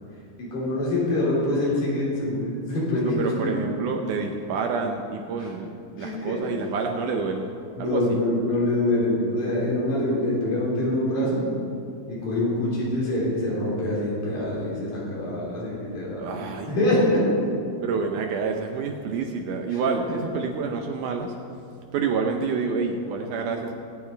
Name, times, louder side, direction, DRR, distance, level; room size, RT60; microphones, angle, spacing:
voice 1, 0.4-3.5 6.0-6.4 7.8-11.4 12.1-17.4 19.7-19.8, left 1 dB, 60° left, -6 dB, 5.4 m, -25 dB
voice 2, 3.2-7.5 7.8-8.2 16.2-17.0 17.8-21.4 21.9-23.7, right 5 dB, 80° right, 3 dB, 1.8 m, -28 dB
19.5 x 8.8 x 4.6 m, 2.4 s
omnidirectional pair, 4.6 m